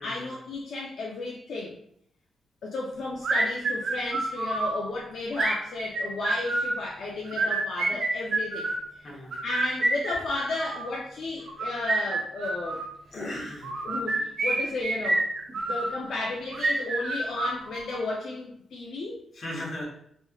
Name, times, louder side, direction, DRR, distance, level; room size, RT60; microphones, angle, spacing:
voice 1, 0.0-1.7 2.6-8.7 9.4-12.8 13.1-13.3 13.8-15.2 15.5-19.2, left 2 dB, 65° left, -3 dB, 0.5 m, -33 dB
sound 1, 3.2-4.8 5.3-6.8 7.3-8.8 9.3-10.9 11.5-12.9 13.6-15.9 16.5-18.0, right 2 dB, 50° right, 0.6 m, -28 dB
voice 2, 13.1-13.8 19.4-19.8, left 1 dB, 40° left, -5 dB, 1.1 m, -36 dB
3.1 x 3.0 x 2.3 m, 0.70 s
wide cardioid pair, 170°, 0 cm